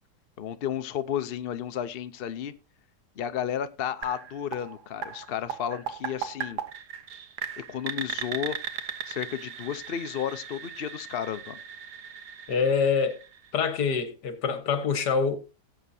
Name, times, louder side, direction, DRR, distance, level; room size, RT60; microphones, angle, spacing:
voice 1, 0.4-2.5 3.2-6.6 7.6-8.6 9.1-11.6, left 9 dB, 55° left, 0.6 m, -32 dB
sound 1, 4.0-13.8, right 8 dB, 70° right, 1.6 m, -38 dB
voice 2, 12.5-13.2 13.5-15.4, left 5 dB, 70° left, 1.9 m, -25 dB
17.5 x 7.9 x 2.7 m
omnidirectional pair, 1.8 m